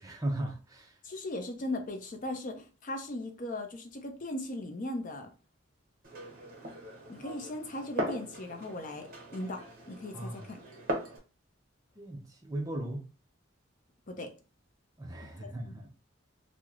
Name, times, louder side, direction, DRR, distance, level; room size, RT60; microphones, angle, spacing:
voice 1, 0.0-1.0 10.1-10.4 12.0-13.0 15.0-15.9, right 1 dB, 15° right, 0.6 m, -37 dB
voice 2, 1.0-5.3 7.1-10.6 14.1-14.3 15.4-15.7, left 1 dB, 40° left, 0.5 m, -38 dB
Glass, 6.0-11.2, right 1 dB, 45° right, 0.9 m, -39 dB
3.0 x 2.0 x 3.6 m
head